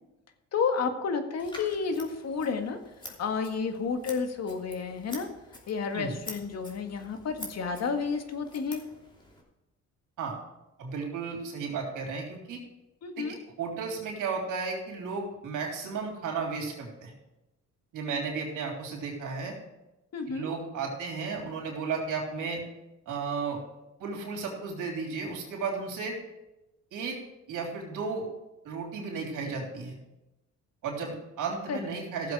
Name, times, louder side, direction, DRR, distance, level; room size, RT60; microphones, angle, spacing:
voice 1, 0.5-2.8 3.0-5.3 5.7-8.8 13.0-13.4 20.1-20.5 31.7-31.9, left 5 dB, 60° left, 6 dB, 1.7 m, -31 dB
Scissors, 1.4-9.4, left 1 dB, 15° left, 3.1 m, -47 dB
voice 2, 10.8-12.6 13.2-13.3 13.6-17.1 17.9-19.5 20.3-22.6 23.0-23.6 24.0-26.2 26.9-27.2 27.5-28.3 28.6-29.9 30.8-32.3, right 5 dB, 85° right, 0 dB, 3.4 m, -34 dB
15.5 x 7.5 x 4.8 m, 0.98 s
cardioid pair, 90°, 30 cm